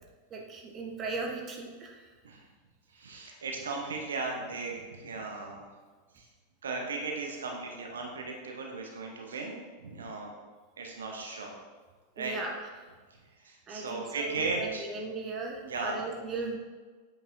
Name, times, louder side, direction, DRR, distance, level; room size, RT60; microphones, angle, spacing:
voice 1, 0.3-2.1 12.2-12.7 13.7-16.6, right 3 dB, 25° right, 1 dB, 0.9 m, -37 dB
voice 2, 2.9-5.7 6.1-6.3 6.6-10.3 10.8-11.5 12.2-12.3 13.1-14.9 15.6-16.2, right 3 dB, 65° right, 0 dB, 0.9 m, -36 dB
8.1 x 5.2 x 2.7 m, 1.4 s
figure-of-eight pair, 90°, 0 cm